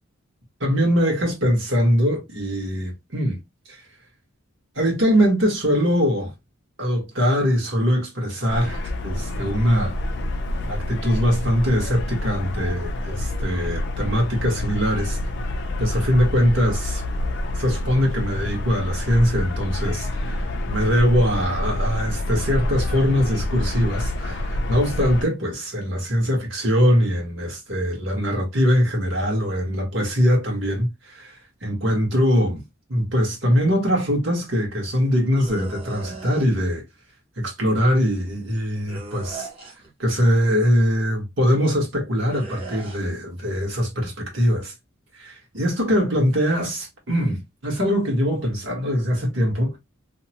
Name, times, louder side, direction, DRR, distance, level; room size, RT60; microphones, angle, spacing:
voice 1, 0.6-3.4 3.7-3.8 4.7-6.3 6.8-10.0 10.7-15.2 15.8-17.0 17.5-32.6 32.9-36.8 37.4-39.5 40.0-44.7 45.2-49.8, equal, 65° right, 1.3 m, -22 dB
sound 1, 8.5-25.3, left 1 dB, 55° left, 0.4 m, -27 dB
sound 2, 35.4-36.5 38.9-39.9 42.3-43.0, right 4 dB, 25° right, 0.7 m, -37 dB
2.8 x 2.2 x 2.7 m
head